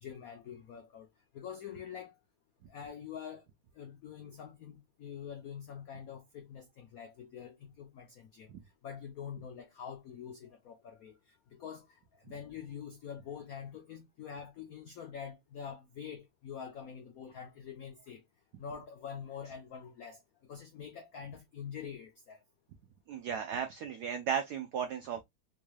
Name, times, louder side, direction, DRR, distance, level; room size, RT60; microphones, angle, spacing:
voice 1, 0.0-1.1 1.3-2.1 2.7-3.4 3.8-8.5 8.8-11.2 11.5-12.0 12.3-18.2 18.6-20.2 20.5-22.4, left 7 dB, 90° left, 0.7 m, -45 dB
voice 2, 23.1-25.2, right 8 dB, 90° right, 0.8 m, -35 dB
4.5 x 3.2 x 2.2 m
omnidirectional pair, 2.3 m